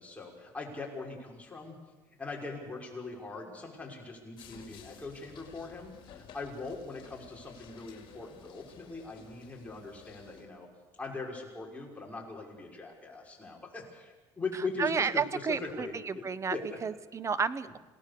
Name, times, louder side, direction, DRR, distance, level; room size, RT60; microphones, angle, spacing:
voice 1, 0.0-1.8 2.2-10.7 11.0-15.2 15.8-16.2 16.5-16.7, left 3 dB, 15° left, -1 dB, 5.9 m, -41 dB
sound 1, 4.4-10.5, left 7 dB, 55° left, 4.3 m, -54 dB
voice 2, 14.5-16.6 16.8-17.8, right 6 dB, 30° right, 15 dB, 1.1 m, -31 dB
27.5 x 18.0 x 6.9 m, 1.2 s
cardioid pair, 110°, 10 cm